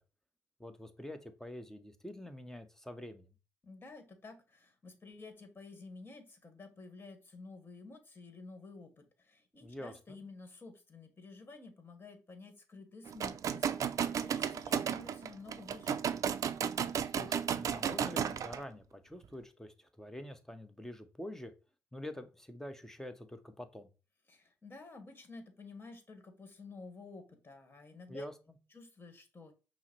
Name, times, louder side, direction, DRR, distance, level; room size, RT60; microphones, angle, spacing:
voice 1, 0.6-3.3 9.6-10.2 17.1-21.5 21.9-23.9 28.1-28.6, left 1 dB, 5° left, 8 dB, 0.8 m, -46 dB
voice 2, 3.6-16.0 24.3-28.2 28.7-29.5, left 3 dB, 30° left, 7 dB, 1.5 m, -51 dB
sound 1, 13.1-18.6, right 8 dB, 60° right, 0.4 m, -34 dB
5.6 x 2.1 x 4.4 m, 0.33 s
supercardioid pair, 60°, 6 cm